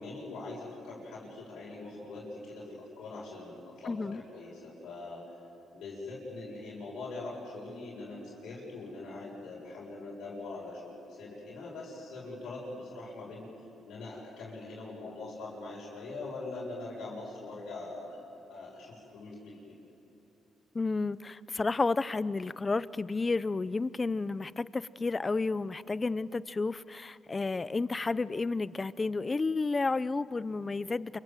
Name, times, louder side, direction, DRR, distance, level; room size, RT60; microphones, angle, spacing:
voice 1, 0.0-5.2 5.7-13.5 13.8-18.2 18.5-19.7, left 2 dB, 75° left, -6 dB, 7.5 m, -42 dB
voice 2, 3.9-4.2 20.7-31.2, left 3 dB, 25° left, 18 dB, 0.7 m, -31 dB
28.5 x 24.0 x 7.8 m, 2.8 s
cardioid pair, 90°, 0 cm